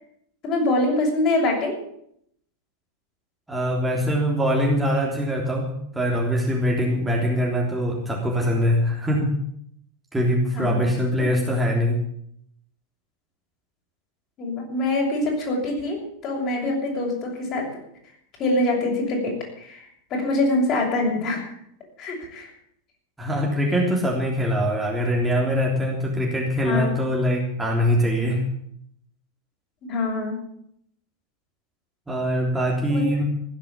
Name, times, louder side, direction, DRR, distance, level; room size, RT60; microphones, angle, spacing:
voice 1, 0.4-1.8 10.5-10.9 14.4-17.8 18.4-21.5 22.0-22.5 26.6-26.9 29.8-30.4 32.9-33.1, left 2 dB, 35° left, 0 dB, 6.8 m, -24 dB
voice 2, 3.5-9.4 10.1-12.0 23.2-28.4 32.1-33.2, equal, 10° right, -2 dB, 3.5 m, -23 dB
16.0 x 10.5 x 8.6 m, 0.71 s
figure-of-eight pair, 90°, 0 cm